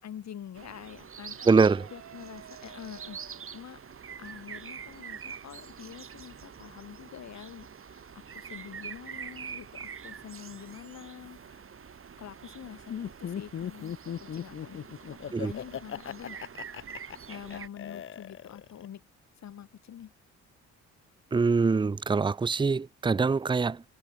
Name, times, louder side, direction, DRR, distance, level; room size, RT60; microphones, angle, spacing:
voice 1, 0.0-1.5 1.9-3.8 4.2-11.6 12.2-13.9 14.2-16.4 17.3-19.0 19.4-20.1, left 9 dB, 60° left, 5.4 m, -46 dB
sound 1, 0.5-17.7, right 7 dB, 45° right, 4.0 m, -45 dB
sound 2, 1.3-6.9, right 9 dB, 60° right, 5.5 m, -55 dB
voice 2, 1.5-1.9 15.3-15.5 21.3-23.8, right 4 dB, 15° right, 0.6 m, -24 dB
Laughter, 12.9-18.9, left 9 dB, 45° left, 0.9 m, -38 dB
cardioid pair, 90°, 30 cm